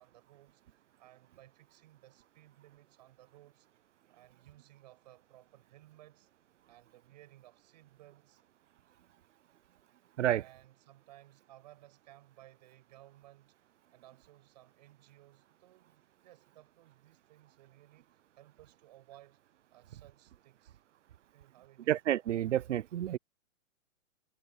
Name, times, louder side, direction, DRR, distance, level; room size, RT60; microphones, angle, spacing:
voice 1, 0.0-3.7 4.1-6.3 6.7-8.4 10.3-13.6 13.9-19.4 19.7-20.8 21.3-21.9, right 15 dB, 30° right, 7.6 m, -59 dB
voice 2, 21.9-23.2, right 12 dB, 65° right, 0.5 m, -29 dB
hypercardioid pair, 175°, 40 cm